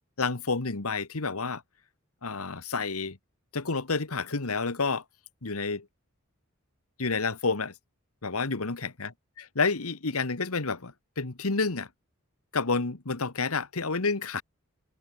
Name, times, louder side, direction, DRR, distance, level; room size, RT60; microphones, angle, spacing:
voice 1, 0.2-1.6 2.2-3.2 3.5-5.0 5.4-5.9 7.0-7.7 8.2-9.1 9.4-11.9 12.5-14.4, left 4 dB, 80° left, 1.5 m, -29 dB
head